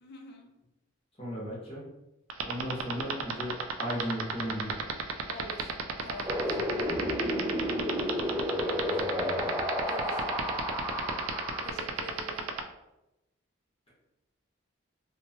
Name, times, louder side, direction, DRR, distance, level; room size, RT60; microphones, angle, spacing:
voice 1, 0.0-0.5 5.3-5.7 6.0-6.6 9.8-10.3 11.6-12.5, left 1 dB, 55° left, 2 dB, 0.5 m, -45 dB
voice 2, 1.2-1.8 2.4-4.9 8.5-9.5, equal, 30° left, -6 dB, 0.9 m, -37 dB
sound 1, 2.3-12.6, right 8 dB, 85° right, 0.3 m, -31 dB
Wind, 6.3-11.7, left 1 dB, 10° right, 0.3 m, -31 dB
sound 2, 6.8-9.3, right 1 dB, 50° right, 0.6 m, -46 dB
2.8 x 2.2 x 2.8 m, 0.93 s
head